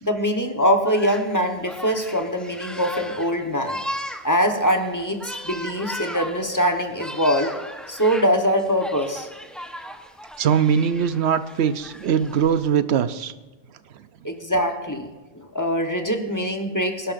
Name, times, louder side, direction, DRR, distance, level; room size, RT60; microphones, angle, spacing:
voice 1, 0.0-3.8 4.2-7.5 7.9-9.3 14.2-15.1 15.3-17.1, equal, 20° left, 4 dB, 1.1 m, -23 dB
sound 1, 0.9-12.6, equal, ahead, 0.8 m, -37 dB
voice 2, 10.4-13.3, right 7 dB, 85° right, 12 dB, 0.9 m, -21 dB
24.5 x 11.5 x 2.6 m, 1.2 s
omnidirectional pair, 1.1 m